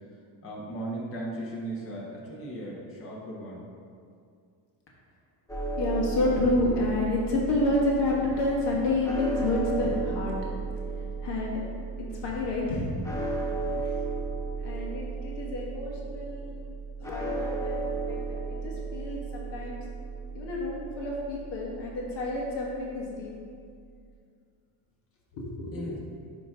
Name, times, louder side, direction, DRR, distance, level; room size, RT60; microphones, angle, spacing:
voice 1, 0.4-3.7 13.6-13.9 25.7-26.0, right 1 dB, 25° left, -4 dB, 1.3 m, -37 dB
sound 1, 5.5-23.4, right 3 dB, 5° left, 0.6 m, -35 dB
voice 2, 5.8-10.3 11.2-11.6 12.2-12.9 13.8-13.9 14.6-16.7 17.0-19.8 20.3-23.3 25.3-25.9, left 2 dB, 55° left, -3 dB, 1.3 m, -29 dB
9.2 x 3.1 x 3.8 m, 2.3 s
cardioid pair, 120°, 49 cm